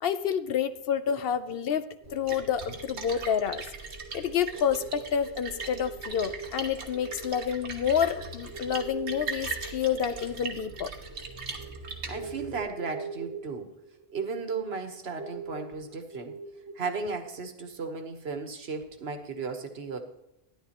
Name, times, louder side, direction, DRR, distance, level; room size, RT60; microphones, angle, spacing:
voice 1, 0.0-3.6 4.1-10.9, left 8 dB, 65° left, 12 dB, 0.7 m, -29 dB
Splash splatter, 2.0-12.6, right 4 dB, 85° right, 1.5 m, -40 dB
sound 1, 2.1-17.5, right 4 dB, 25° left, 1.7 m, -43 dB
voice 2, 12.1-13.7 14.1-16.3 16.7-20.0, right 4 dB, 70° right, 6 dB, 1.4 m, -35 dB
12.5 x 10.5 x 2.9 m, 0.88 s
omnidirectional pair, 1.1 m